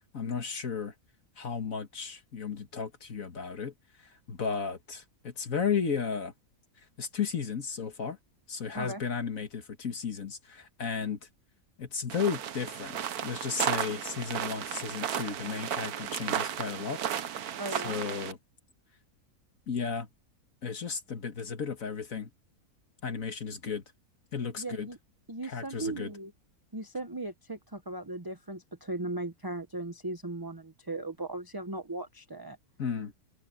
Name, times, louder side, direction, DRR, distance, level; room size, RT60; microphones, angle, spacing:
voice 1, 0.1-0.9 1.4-3.7 4.3-6.3 7.0-8.2 8.5-11.2 11.8-17.0 17.8-18.4 19.7-20.1 20.6-22.3 23.0-23.8 24.3-24.9 25.5-26.1 32.8-33.1, left 6 dB, 60° left, 2.0 m, -34 dB
sound 1, 12.1-18.3, right 9 dB, 70° right, 1.5 m, -34 dB
voice 2, 17.6-18.0 24.6-25.0 25.3-26.3 26.7-32.6, right 2 dB, 15° right, 0.9 m, -37 dB
omnidirectional pair, 1.7 m